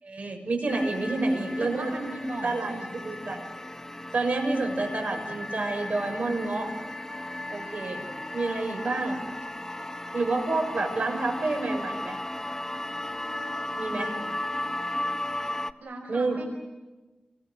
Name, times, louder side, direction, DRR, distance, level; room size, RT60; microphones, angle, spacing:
voice 1, 0.0-1.9 2.4-2.7 3.0-3.5 4.1-6.7 7.5-8.0 8.3-9.2 10.1-12.2 13.8-14.1 16.1-16.4, right 2 dB, 60° right, 3 dB, 6.9 m, -28 dB
sound 1, 0.7-15.7, left 1 dB, 15° left, 1.2 m, -35 dB
voice 2, 1.6-2.9 15.8-16.5, right 2 dB, 80° right, 3 dB, 5.0 m, -36 dB
29.5 x 23.0 x 8.2 m, 1.1 s
wide cardioid pair, 80°, 3 cm